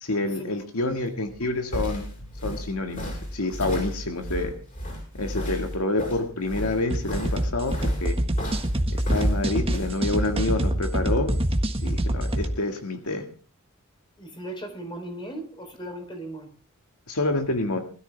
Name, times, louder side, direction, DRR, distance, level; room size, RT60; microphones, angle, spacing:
voice 1, 0.0-2.1 2.4-4.5 5.2-8.2 8.9-11.4 11.8-13.2 17.1-17.8, left 2 dB, 75° left, 5 dB, 1.9 m, -28 dB
sound 1, 1.3-9.9, equal, 35° left, 7.4 m, -33 dB
sound 2, 6.9-12.5, right 1 dB, 25° right, 1.5 m, -25 dB
voice 2, 14.2-16.5, right 1 dB, 20° left, 6 dB, 3.6 m, -37 dB
20.5 x 13.5 x 3.4 m, 0.37 s
head